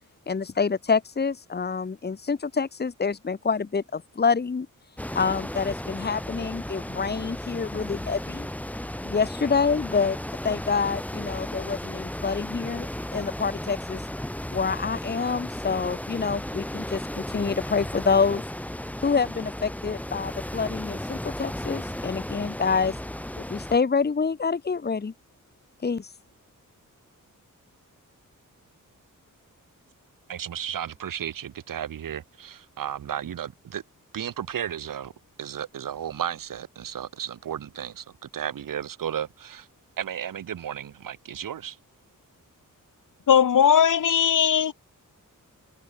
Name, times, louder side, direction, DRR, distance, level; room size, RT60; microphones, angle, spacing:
voice 1, 0.3-4.7 5.1-8.5 9.0-10.2 10.4-14.0 14.5-18.4 19.0-22.9 23.4-25.1 25.8-26.1, left 5 dB, 30° left, 1.3 m, -27 dB
sound 1, 5.0-23.8, left 1 dB, 5° left, 1.1 m, -35 dB
voice 2, 30.3-33.8 34.1-35.1 35.4-38.0 38.3-39.7 40.0-41.8, right 9 dB, 75° right, 1.2 m, -33 dB
voice 3, 43.3-44.7, left 8 dB, 70° left, 1.4 m, -18 dB
wide cardioid pair, 145°, 33 cm